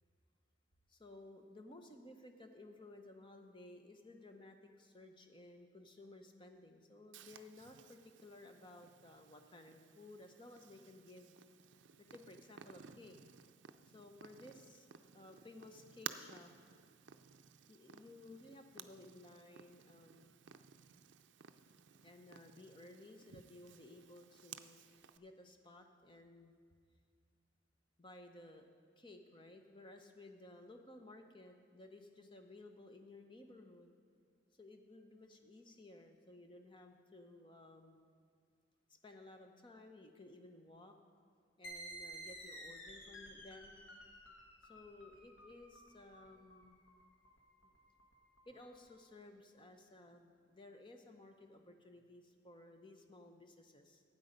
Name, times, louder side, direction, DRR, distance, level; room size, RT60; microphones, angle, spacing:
voice 1, 0.9-11.4 12.1-13.2 13.9-16.5 17.7-20.4 22.0-24.8 25.2-26.6 28.0-28.6 29.0-33.9 34.6-38.0 39.0-41.0 41.6-43.8 44.7-46.8 47.6-47.7 48.4-54.0, left 2 dB, 25° left, 5 dB, 0.8 m, -57 dB
Purr, 7.1-25.2, right 8 dB, 65° right, 0.5 m, -56 dB
sound 1, 41.6-48.9, right 1 dB, 65° left, 1.5 m, -53 dB
12.0 x 8.7 x 5.2 m, 2.1 s
head